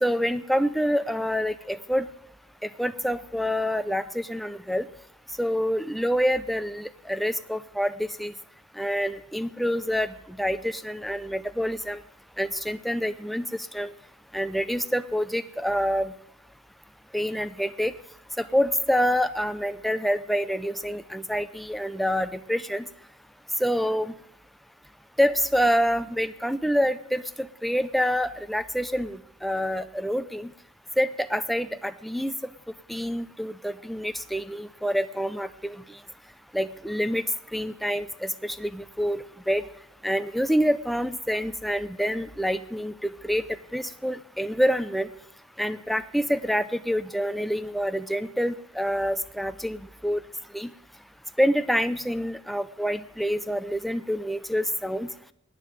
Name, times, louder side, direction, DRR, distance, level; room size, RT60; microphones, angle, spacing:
voice 1, 0.0-2.1 2.6-4.9 5.4-8.3 8.8-12.0 12.4-13.5 13.7-13.9 14.3-16.1 17.1-17.9 18.4-22.9 23.6-24.1 25.2-30.5 31.0-32.3 32.9-35.7 36.5-37.2 37.5-39.6 40.0-43.4 43.7-45.1 45.6-50.2 50.5-50.7 51.4-55.1, equal, ahead, 11 dB, 0.5 m, -27 dB
10.5 x 9.6 x 9.0 m, 0.75 s
head